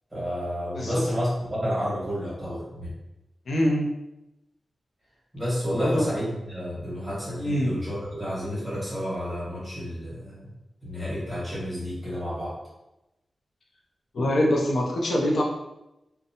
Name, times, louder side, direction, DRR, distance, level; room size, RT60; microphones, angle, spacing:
voice 1, 0.1-2.9 5.3-10.4 10.8-12.5, equal, 10° right, -8 dB, 1.5 m, -30 dB
voice 2, 3.5-3.9 5.8-6.1 7.4-7.7 14.1-15.4, equal, 65° left, -1 dB, 0.5 m, -24 dB
2.6 x 2.1 x 2.8 m, 0.93 s
wide cardioid pair, 145°, 0 cm